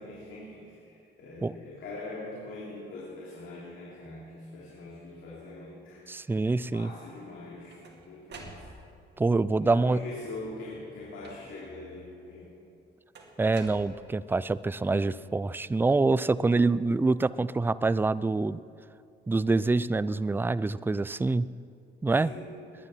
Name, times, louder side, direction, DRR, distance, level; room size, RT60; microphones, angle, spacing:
voice 1, 0.0-6.0 6.7-7.8 8.1-8.7 9.6-12.5 22.2-22.5, left 2 dB, 80° left, -6 dB, 3.3 m, -42 dB
voice 2, 6.1-6.9 9.2-10.0 13.4-18.6 19.3-21.5 22.0-22.3, right 3 dB, 10° right, 18 dB, 0.3 m, -26 dB
sound 1, 7.3-9.1 10.0-10.5 11.2-11.8 13.1-14.4, right 3 dB, 60° right, 2.2 m, -49 dB
21.5 x 9.8 x 5.7 m, 2.5 s
cardioid pair, 90°, 20 cm